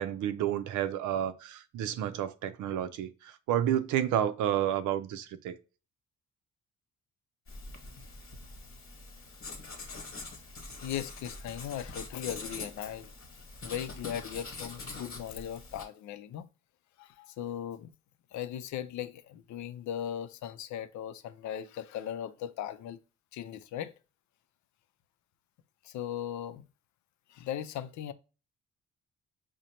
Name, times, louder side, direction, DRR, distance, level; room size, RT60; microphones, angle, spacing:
voice 1, 0.0-5.5, right 10 dB, 80° right, 0.5 m, -30 dB
Writing, 7.5-15.8, left 3 dB, 45° left, 1.2 m, -44 dB
voice 2, 10.8-13.1 13.6-16.5 17.0-17.9 18.3-23.0 23.3-23.9 25.8-26.6 27.3-28.1, left 10 dB, 70° left, 0.5 m, -38 dB
5.0 x 2.1 x 2.9 m
cardioid pair, 90°, 30 cm